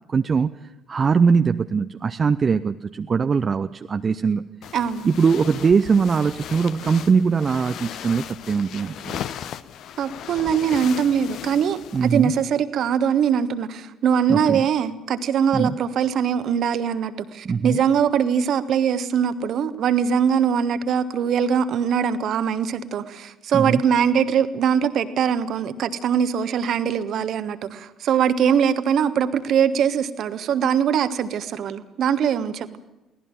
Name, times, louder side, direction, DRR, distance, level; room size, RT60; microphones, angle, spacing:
voice 1, 0.1-4.4 5.0-9.2 11.9-12.3 14.3-14.7 15.5-15.8 17.4-17.8 23.5-23.8, right 5 dB, 35° right, 9 dB, 0.7 m, -21 dB
sound 1, 4.6-12.4, left 10 dB, 55° left, 0.9 m, -37 dB
voice 2, 4.7-5.1 10.0-32.7, right 7 dB, 50° right, 13 dB, 1.3 m, -22 dB
23.5 x 17.5 x 7.4 m, 1.0 s
figure-of-eight pair, 50°, 0 cm